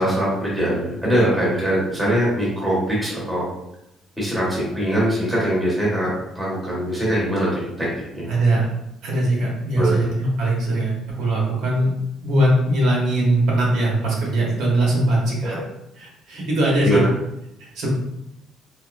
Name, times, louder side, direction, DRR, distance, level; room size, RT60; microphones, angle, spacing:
voice 1, 0.0-3.5 4.2-6.1 6.3-7.9 8.1-8.2 9.8-10.0 15.4-15.6 16.8-17.0, right 1 dB, 5° right, -6 dB, 1.1 m, -22 dB
voice 2, 8.3-8.6 9.0-11.9 12.2-15.6 16.0-17.0 17.6-17.9, right 1 dB, 65° right, -3 dB, 1.1 m, -21 dB
3.6 x 2.7 x 2.5 m, 0.83 s
cardioid pair, 170°, 0 cm